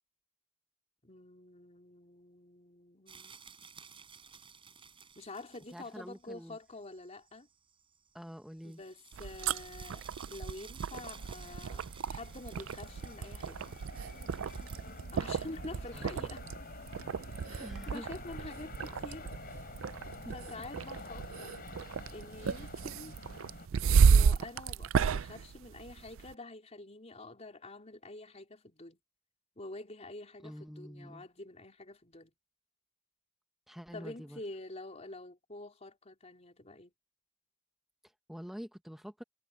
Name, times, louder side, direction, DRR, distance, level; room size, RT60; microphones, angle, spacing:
voice 1, 1.0-3.3 5.2-7.5 8.6-13.6 15.1-16.5 17.5-19.3 20.3-21.6 22.1-23.2 24.1-29.0 29.6-32.3 33.9-36.9, left 2 dB, 35° left, 3.9 m, -47 dB
sound 1, 3.1-15.0, right 6 dB, 25° right, 6.1 m, -56 dB
voice 2, 5.7-6.6 8.1-8.8 15.9-16.2 17.6-18.0 20.2-20.6 30.4-31.3 33.7-34.4 38.0-39.2, equal, ahead, 0.8 m, -47 dB
sound 2, 9.1-26.3, right 6 dB, 75° right, 0.4 m, -32 dB
sound 3, 11.0-23.7, left 2 dB, 50° left, 4.4 m, -49 dB
head